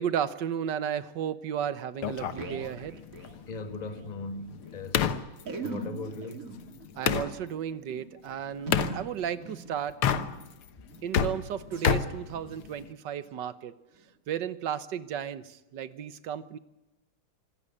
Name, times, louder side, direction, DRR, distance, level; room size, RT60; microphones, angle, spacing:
voice 1, 0.0-3.0 7.0-9.9 11.0-13.7 14.3-16.6, right 9 dB, 60° right, 14 dB, 1.5 m, -34 dB
sound 1, 1.9-4.1 4.4-4.5 4.6-4.8 5.4-10.5 10.9-11.2 11.6-11.9 12.4-12.7 13.2-13.3 14.0-14.1, right 3 dB, 40° right, 2.4 m, -42 dB
sound 2, 2.0-7.3 8.7-9.0 9.9-10.6 10.9-12.9, left 8 dB, 80° left, 2.0 m, -30 dB
voice 2, 3.5-5.1 5.5-6.6, left 3 dB, 20° left, 9 dB, 1.5 m, -39 dB
26.0 x 16.0 x 9.9 m, 0.96 s
omnidirectional pair, 2.3 m